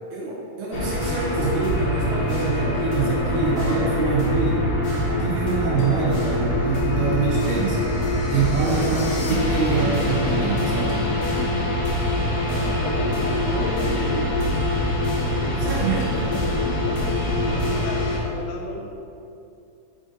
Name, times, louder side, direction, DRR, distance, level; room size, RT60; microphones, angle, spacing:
voice 1, 0.1-4.7 5.1-7.8 8.3-11.0 15.6-16.4, right 5 dB, 80° right, -4 dB, 2.3 m, -25 dB
sound 1, 0.7-18.2, left 1 dB, 60° left, 1.0 m, -24 dB
voice 2, 12.5-14.3 15.2-15.9 16.2-18.9, left 1 dB, 80° left, 1 dB, 2.0 m, -33 dB
7.4 x 5.1 x 2.7 m, 2.6 s
omnidirectional pair, 3.6 m